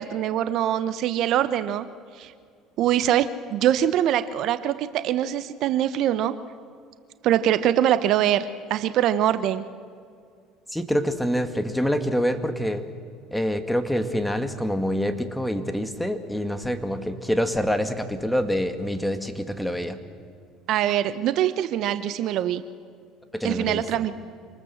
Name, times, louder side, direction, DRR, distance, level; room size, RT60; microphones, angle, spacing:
voice 1, 0.0-1.9 2.2-2.3 2.8-6.3 7.2-9.6 20.7-22.6 23.4-24.1, right 11 dB, 60° right, 13 dB, 0.9 m, -23 dB
voice 2, 10.7-12.8 13.3-20.0 23.3-24.0, equal, 5° left, 8 dB, 2.0 m, -26 dB
26.0 x 19.5 x 7.2 m, 2.3 s
hypercardioid pair, 75°, 0 cm